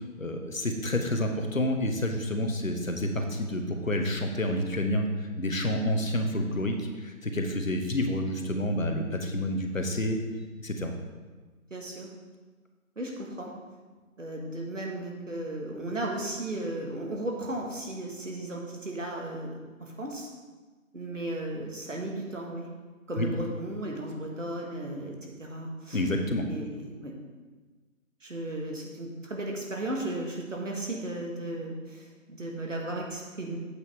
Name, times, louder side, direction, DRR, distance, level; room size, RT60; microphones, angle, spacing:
voice 1, 0.2-10.2 10.6-10.9 23.2-23.3 25.9-26.5, left 1 dB, 70° left, 4 dB, 1.3 m, -29 dB
voice 2, 11.7-12.1 13.0-13.5 14.2-20.3 20.9-22.7 23.1-26.0 26.5-27.1 28.2-33.6, right 1 dB, 60° right, 0 dB, 1.8 m, -35 dB
8.2 x 7.8 x 3.6 m, 1.3 s
figure-of-eight pair, 155°, 42 cm